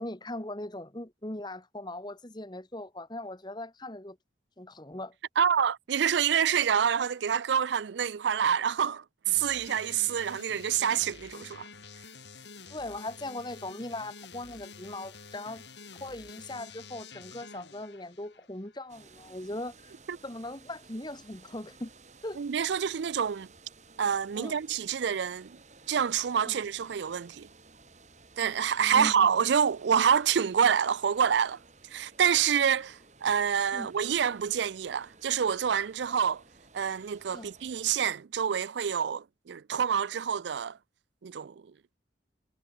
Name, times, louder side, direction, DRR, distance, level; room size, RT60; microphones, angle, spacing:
voice 1, 0.0-4.2 4.6-5.1 12.7-15.6 16.0-19.9 20.2-21.9 22.2-22.4 24.4-24.6 26.4-26.6 28.8-29.3 33.7-33.9 37.3-37.5, left 1 dB, 25° left, 1.9 m, -39 dB
voice 2, 5.4-11.7 20.1-20.2 22.4-23.5 24.0-25.6 25.9-27.5 28.4-31.6 31.9-36.4 36.7-40.8 41.2-41.5, right 8 dB, 70° right, 0.4 m, -27 dB
sound 1, 9.3-18.9, left 4 dB, 70° left, 7.6 m, -49 dB
sound 2, 18.9-37.9, right 3 dB, 40° right, 5.9 m, -56 dB
head